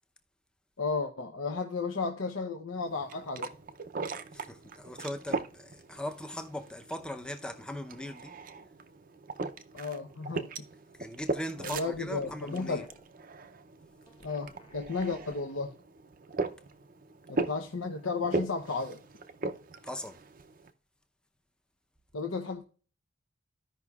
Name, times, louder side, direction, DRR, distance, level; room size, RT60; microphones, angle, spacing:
voice 1, 0.8-3.5 9.7-10.5 11.6-12.8 14.2-15.7 17.3-19.0 22.1-22.6, left 4 dB, 80° left, 0.8 m, -33 dB
sound 1, 2.9-20.7, right 3 dB, 40° right, 0.5 m, -39 dB
voice 2, 4.3-8.3 11.0-12.9 19.8-20.2, left 1 dB, 5° left, 0.6 m, -39 dB
sound 2, 11.5-13.1 14.0-15.8, left 1 dB, 25° left, 1.0 m, -53 dB
15.0 x 5.5 x 2.3 m
head